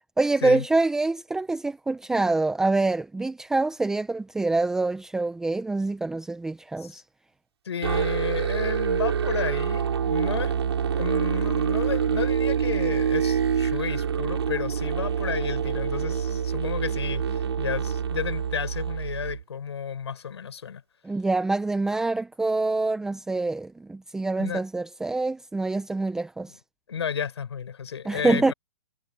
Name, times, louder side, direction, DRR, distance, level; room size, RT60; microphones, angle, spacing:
voice 1, 0.2-7.0 21.0-26.5 28.0-28.5, right 3 dB, 5° right, 0.8 m, -25 dB
voice 2, 7.7-10.5 10.9-20.8 24.3-24.6 26.4-26.6 26.9-28.5, left 7 dB, 75° left, 7.0 m, -32 dB
Musical instrument, 7.8-19.4, right 8 dB, 75° right, 5.8 m, -26 dB
hypercardioid pair, 155°, 14 cm